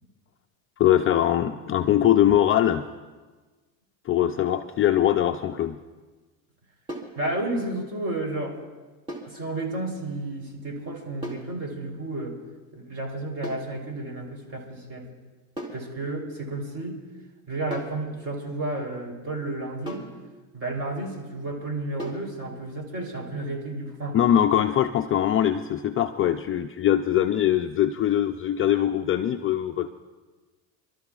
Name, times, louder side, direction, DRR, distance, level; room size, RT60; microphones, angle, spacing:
voice 1, 0.8-2.9 4.1-5.8 24.1-29.9, left 11 dB, 30° left, 6 dB, 0.5 m, -22 dB
sound 1, 6.9-7.2 9.1-9.4 11.2-11.5 13.4-13.7 15.6-15.9 17.7-18.0 19.9-20.2 22.0-22.3, equal, 10° right, 2.6 m, -36 dB
voice 2, 7.2-8.6 9.2-12.4 12.7-15.1 15.7-17.0 17.5-20.1 20.5-24.2, right 2 dB, 35° right, 1 dB, 3.5 m, -32 dB
29.0 x 13.0 x 2.4 m, 1.3 s
supercardioid pair, 105°, 44 cm